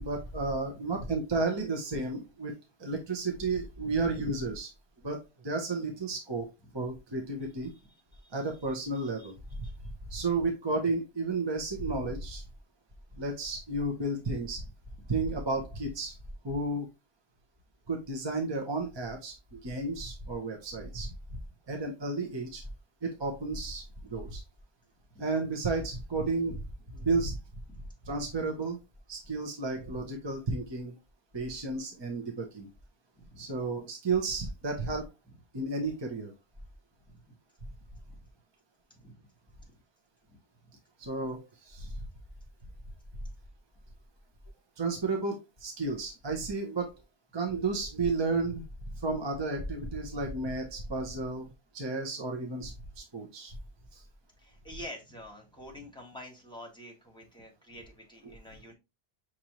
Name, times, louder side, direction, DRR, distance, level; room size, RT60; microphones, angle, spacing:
voice 1, 0.0-2.5 2.8-4.7 5.0-6.5 6.7-7.7 8.3-9.6 10.1-12.4 13.1-14.6 15.1-16.2 16.4-16.9 17.9-21.4 21.7-22.6 23.0-24.4 25.2-27.4 28.0-28.8 29.1-30.9 31.3-32.7 33.4-35.1 35.5-36.3 41.0-42.0 44.8-47.0 47.3-48.6 48.9-53.6 53.9-54.0 58.2-58.4, right 3 dB, 25° right, 2 dB, 0.8 m, -32 dB
voice 2, 0.6-1.1 3.8-4.2 8.2-8.3 9.0-9.3 9.6-9.7 25.1-25.2 33.2-33.5 38.1-38.2 38.9-39.3 40.3-40.4 41.8-41.9 54.4-58.7, equal, 5° left, 0 dB, 1.2 m, -48 dB
6.0 x 2.7 x 2.9 m, 0.24 s
omnidirectional pair, 1.1 m